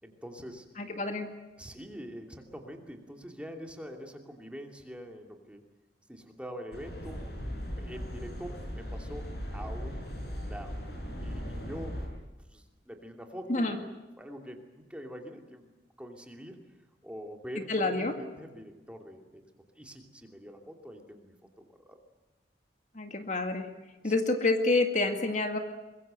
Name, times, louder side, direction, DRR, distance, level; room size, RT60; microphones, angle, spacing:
voice 1, 0.0-0.7 1.6-5.6 6.1-7.3 7.7-9.3 9.5-10.0 10.3-10.8 11.2-12.0 12.4-15.7 16.0-16.6 17.0-19.4 19.8-22.0 24.0-24.1, equal, 5° right, 2 dB, 2.9 m, -44 dB
voice 2, 0.8-1.3 13.5-13.8 17.7-18.1 22.9-23.7 24.0-25.6, left 2 dB, 45° left, 5 dB, 2.0 m, -28 dB
sound 1, 6.7-12.1, equal, 65° left, 7.8 m, -38 dB
23.5 x 22.0 x 7.8 m, 1.1 s
head